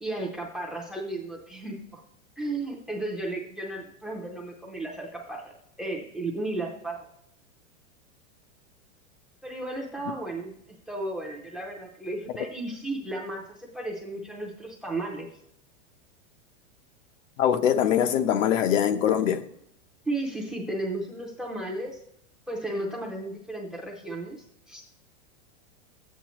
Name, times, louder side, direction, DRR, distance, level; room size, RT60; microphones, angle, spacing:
voice 1, 0.0-2.0 2.4-5.5 5.8-7.1 9.4-10.6 10.9-15.3 20.1-22.0 22.5-24.8, right 2 dB, ahead, 0.5 m, -34 dB
voice 2, 17.4-19.4, left 9 dB, 80° left, 0.9 m, -22 dB
13.0 x 8.4 x 3.0 m
supercardioid pair, 170°, 37 cm